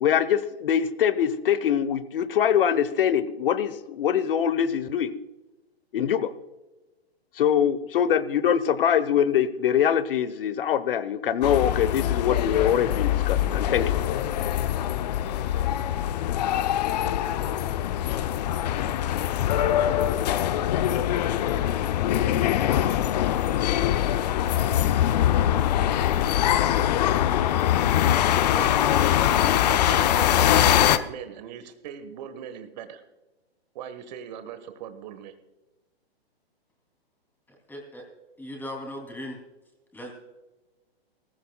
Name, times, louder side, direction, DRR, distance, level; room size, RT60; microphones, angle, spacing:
voice 1, 0.0-5.1 5.9-6.3 7.4-14.0, left 9 dB, 60° left, 15 dB, 1.0 m, -23 dB
sound 1, 11.4-31.0, left 11 dB, 40° left, 0.6 m, -23 dB
voice 2, 28.5-33.0 33.7-35.3, right 8 dB, 45° right, 9 dB, 1.4 m, -39 dB
voice 3, 37.5-38.0 38.4-39.4 39.9-40.1, equal, 5° left, 1 dB, 2.9 m, -38 dB
18.0 x 15.0 x 2.3 m, 1.1 s
hypercardioid pair, 130°, 32 cm